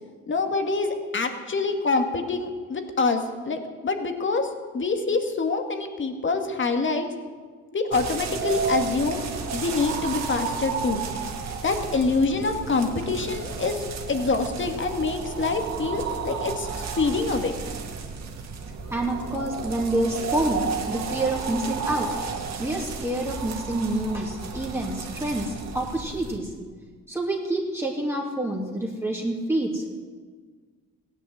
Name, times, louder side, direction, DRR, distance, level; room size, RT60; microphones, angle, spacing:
voice 1, 0.3-7.1 7.7-9.2 9.5-11.0 11.6-13.8 14.1-17.5, left 3 dB, 40° left, 6 dB, 2.2 m, -26 dB
sound 1, 7.9-26.4, right 5 dB, 60° right, 2.2 m, -32 dB
voice 2, 18.9-22.1 22.6-26.5 27.1-29.9, right 1 dB, 10° right, -2 dB, 2.7 m, -27 dB
16.0 x 10.5 x 8.0 m, 1.5 s
cardioid pair, 90°, 30 cm